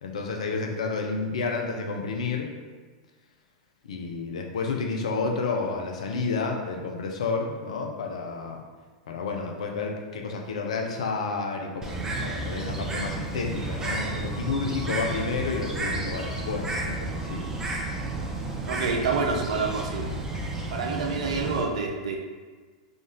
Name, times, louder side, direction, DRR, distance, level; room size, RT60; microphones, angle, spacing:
voice 1, 0.0-2.5 3.8-8.6 9.1-17.4, left 4 dB, 75° left, 2 dB, 0.6 m, -30 dB
Bird, 11.8-21.6, right 2 dB, 15° right, 0.7 m, -32 dB
voice 2, 18.7-20.1 20.7-22.2, right 4 dB, 70° right, 2 dB, 0.6 m, -28 dB
3.7 x 2.5 x 3.6 m, 1.4 s
hypercardioid pair, 100°, 3 cm